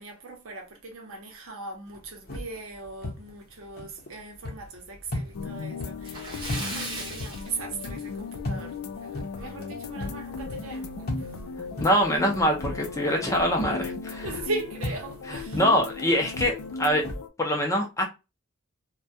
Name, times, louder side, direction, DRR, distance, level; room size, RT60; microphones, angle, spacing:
voice 1, 0.0-11.4 14.2-15.6, right 3 dB, 70° right, 0.7 m, -39 dB
sound 1, 1.9-13.3 13.6-17.2, left 1 dB, 45° left, 0.7 m, -39 dB
sound 2, 5.3-17.3, left 4 dB, 85° left, 0.3 m, -37 dB
Splash splatter, 6.0-8.4 8.7-8.9 9.3-9.4 10.8-10.9 11.3-11.4 12.0-12.2, right 2 dB, 20° right, 0.6 m, -37 dB
voice 2, 11.8-14.2 15.3-17.0 17.4-18.0, equal, 15° left, 0.4 m, -24 dB
2.2 x 2.1 x 2.6 m
head